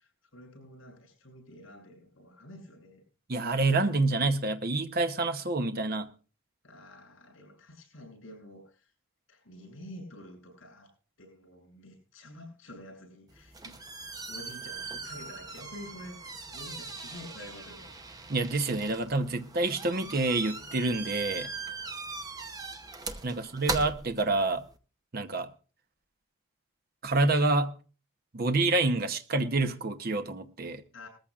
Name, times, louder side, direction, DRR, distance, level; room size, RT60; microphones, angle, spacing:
voice 1, 0.0-3.0 6.6-8.9 9.3-17.9 30.9-31.1, left 1 dB, 70° left, 7.7 m, -49 dB
voice 2, 3.3-6.1 18.3-21.5 23.2-24.6 25.1-25.5 27.0-27.7 28.3-30.8, right 2 dB, 45° right, 0.9 m, -27 dB
sound 1, 13.3-24.7, right 3 dB, 20° right, 0.8 m, -40 dB
20.5 x 14.0 x 2.4 m
head